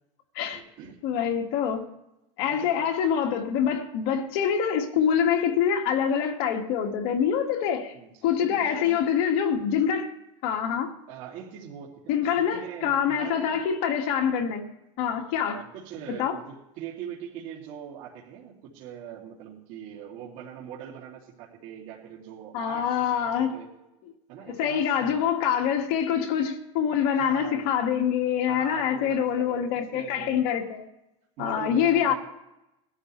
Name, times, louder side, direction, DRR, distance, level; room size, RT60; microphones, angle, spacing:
voice 1, 0.5-1.0 2.5-2.9 7.9-9.0 11.1-13.6 15.4-22.9 23.2-23.7 24.3-25.2 27.1-27.7 28.5-30.6 31.4-32.1, right 8 dB, 55° right, 2.9 m, -42 dB
voice 2, 1.0-1.9 2.4-7.9 8.2-10.1 10.4-10.9 12.1-14.7 15.0-15.6 16.2-16.4 22.5-23.5 24.5-30.9 31.4-32.1, left 8 dB, 55° left, 2.1 m, -25 dB
20.5 x 12.0 x 3.3 m
supercardioid pair, 140°, 16 cm